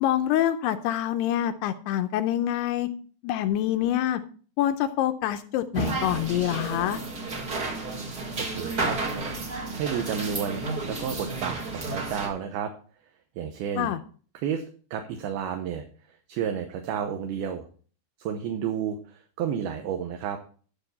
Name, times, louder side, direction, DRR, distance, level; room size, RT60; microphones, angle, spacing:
voice 1, 0.0-2.9 3.2-4.2 4.6-7.0 13.8-14.0, left 12 dB, 80° left, 9 dB, 2.6 m, -26 dB
sound 1, 5.7-12.3, right 2 dB, 45° right, 1.3 m, -32 dB
voice 2, 8.4-9.0 9.7-12.7 13.4-13.9 14.3-14.6 14.9-15.8 16.3-17.6 18.2-20.4, right 8 dB, 70° right, 5 dB, 2.7 m, -31 dB
12.0 x 7.0 x 4.3 m, 0.42 s
omnidirectional pair, 4.9 m